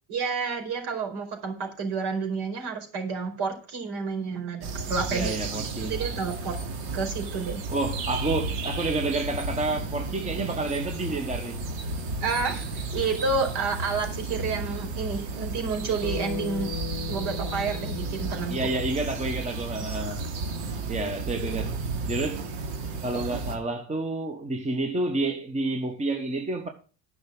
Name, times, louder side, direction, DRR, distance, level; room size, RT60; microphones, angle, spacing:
voice 1, 0.1-6.6 6.9-7.6 12.2-16.7 17.1-18.6 19.8-19.9 21.4-21.7, right 4 dB, 55° right, 4.8 m, -30 dB
sound 1, 4.6-23.6, right 3 dB, 85° right, 2.7 m, -33 dB
voice 2, 5.1-5.9 7.7-11.6 18.5-20.2 20.9-21.8 22.1-22.4 23.0-26.7, right 2 dB, 15° right, 1.2 m, -29 dB
Bass guitar, 16.0-20.4, left 10 dB, 45° left, 0.8 m, -39 dB
10.5 x 6.1 x 7.6 m
cardioid pair, 125°, 46 cm